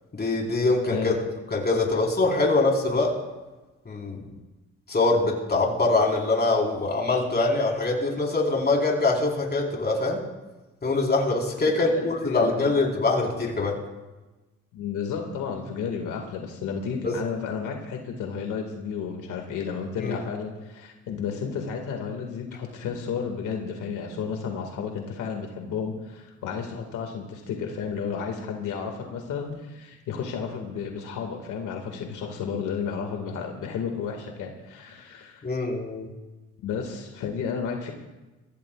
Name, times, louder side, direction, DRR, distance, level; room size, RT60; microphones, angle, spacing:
voice 1, 0.1-1.1 1.5-3.1 3.9-4.2 4.9-10.2 10.8-13.7 17.0-17.1 20.0-20.2 35.4-36.1, left 3 dB, 35° left, -1 dB, 4.3 m, -23 dB
voice 2, 0.9-1.2 1.9-2.0 11.7-12.7 14.7-35.4 36.6-37.9, left 6 dB, 85° left, 2 dB, 2.1 m, -32 dB
25.0 x 15.5 x 2.4 m, 1.1 s
cardioid pair, 90°, 30 cm